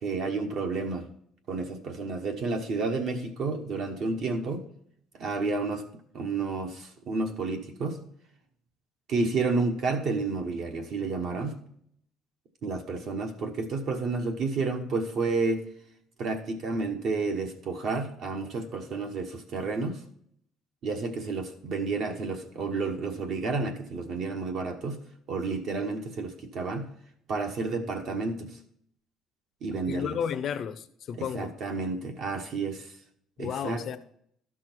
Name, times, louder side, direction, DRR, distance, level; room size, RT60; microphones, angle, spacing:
voice 1, 0.0-1.1 1.5-4.7 5.2-5.8 6.1-8.0 9.1-11.5 12.6-15.7 16.2-20.0 20.8-25.0 25.3-26.9 27.3-28.6 29.6-30.1 31.2-32.9 33.4-34.0, right 3 dB, 45° right, 5 dB, 1.1 m, -30 dB
voice 2, 29.9-31.5 33.4-34.0, left 8 dB, 35° left, 12 dB, 0.6 m, -32 dB
12.5 x 6.2 x 4.4 m, 0.66 s
cardioid pair, 180°, 0 cm